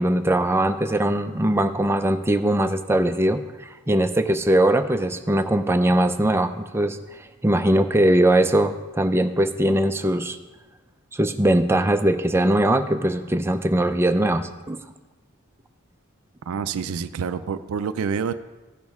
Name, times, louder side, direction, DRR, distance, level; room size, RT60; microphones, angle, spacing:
voice 1, 0.0-3.4 3.9-10.4 11.1-14.8, right 1 dB, 10° right, 7 dB, 0.4 m, -21 dB
voice 2, 16.5-18.3, right 6 dB, 70° right, 11 dB, 0.4 m, -27 dB
15.0 x 6.2 x 3.5 m, 1.2 s
head